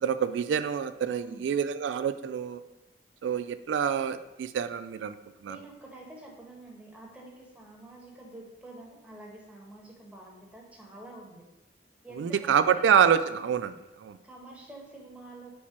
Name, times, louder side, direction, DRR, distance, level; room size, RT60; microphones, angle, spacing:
voice 1, 0.0-2.6 3.2-5.2 5.4-5.6 12.2-14.2, right 7 dB, 90° right, 12 dB, 0.3 m, -26 dB
voice 2, 1.2-1.5 5.5-11.4 12.0-12.9 14.2-15.5, right 2 dB, 10° right, -2 dB, 1.1 m, -48 dB
4.5 x 4.3 x 5.8 m, 1.0 s
head